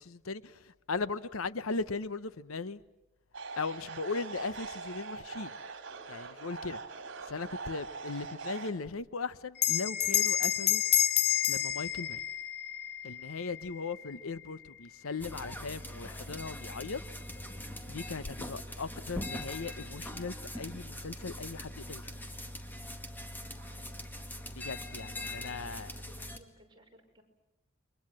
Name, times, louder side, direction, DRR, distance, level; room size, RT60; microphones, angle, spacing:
voice 1, 0.0-2.8 3.6-5.5 6.1-6.8 7.3-10.8 11.5-12.2 13.0-17.0 17.9-22.1 24.5-25.9, left 4 dB, 90° left, 0.9 m, -38 dB
sound 1, 3.3-8.7, right 4 dB, 60° right, 3.0 m, -42 dB
Bell, 9.6-14.4, left 11 dB, 55° left, 1.0 m, -30 dB
sound 2, 15.2-26.4, left 1 dB, 10° left, 2.0 m, -42 dB
voice 2, 23.5-23.9 25.1-27.2, equal, 20° right, 6.2 m, -59 dB
29.5 x 24.0 x 7.7 m
head